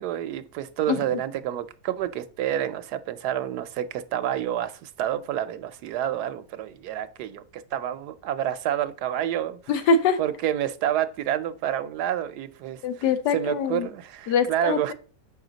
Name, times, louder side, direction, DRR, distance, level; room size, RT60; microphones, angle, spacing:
voice 1, 0.0-9.6 10.2-12.8 13.3-14.9, right 11 dB, 75° right, 1.0 m, -28 dB
voice 2, 9.7-10.2 12.8-13.9 14.3-14.9, left 5 dB, 70° left, 1.3 m, -23 dB
7.1 x 5.6 x 3.9 m
omnidirectional pair, 1.9 m